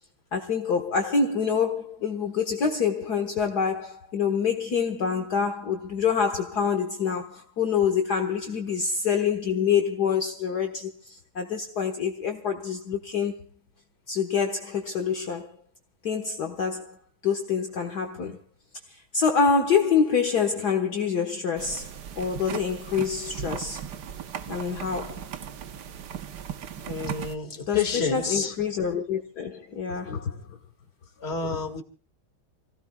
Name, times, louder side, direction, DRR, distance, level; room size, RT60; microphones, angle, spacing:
voice 1, 0.3-13.4 14.1-15.5 16.0-17.0 17.2-18.4 19.1-23.9 24.5-25.3 27.7-30.6, left 6 dB, 55° left, 1.9 m, -26 dB
sound 1, 21.6-27.3, right 8 dB, 60° right, 1.5 m, -37 dB
voice 2, 26.8-28.5 31.2-31.8, left 5 dB, 30° left, 2.3 m, -29 dB
29.0 x 16.5 x 2.3 m
omnidirectional pair, 2.2 m